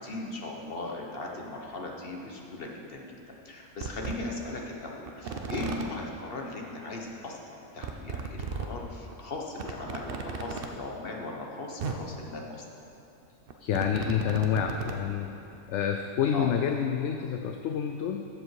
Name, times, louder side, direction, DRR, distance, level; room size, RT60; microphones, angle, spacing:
voice 1, 0.0-3.2 3.4-12.7 16.3-16.5, left 2 dB, 45° left, 0 dB, 1.5 m, -38 dB
sound 1, 1.6-1.7 2.8-2.9 3.3-3.4 3.8-4.1 5.1-5.8 7.0-7.1 7.2-7.3 7.8-8.7 9.1-9.2 9.6-10.7 11.5-11.6 11.8-12.0 13.2-15.0 15.5-15.6, right 5 dB, 50° right, 0.9 m, -35 dB
voice 2, 13.6-15.4 15.7-18.3, left 8 dB, 65° left, 5 dB, 0.8 m, -28 dB
14.0 x 7.7 x 4.8 m, 2.9 s
omnidirectional pair, 1.4 m